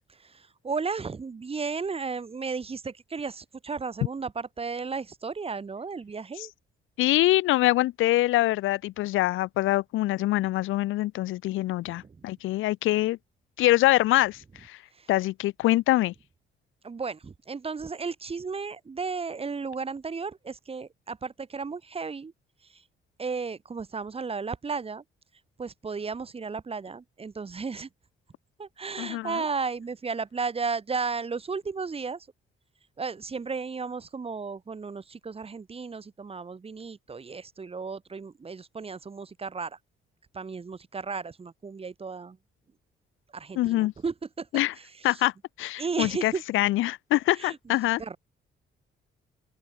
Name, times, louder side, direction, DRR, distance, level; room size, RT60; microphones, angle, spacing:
voice 1, 0.3-6.5 11.9-12.0 16.8-22.3 23.2-25.0 25.6-27.9 28.6-32.3 33.0-39.8 40.3-42.4 43.3-44.5 45.8-46.4 47.4-47.6 48.0-48.2, right 5 dB, 30° right, 1.4 m, -34 dB
voice 2, 7.0-13.2 13.6-14.8 15.1-16.1 29.0-29.4 43.6-43.9 44.5-44.7 45.0-45.3 45.6-48.0, left 16 dB, 85° left, 0.7 m, -24 dB
open air
cardioid pair, 90°, 20 cm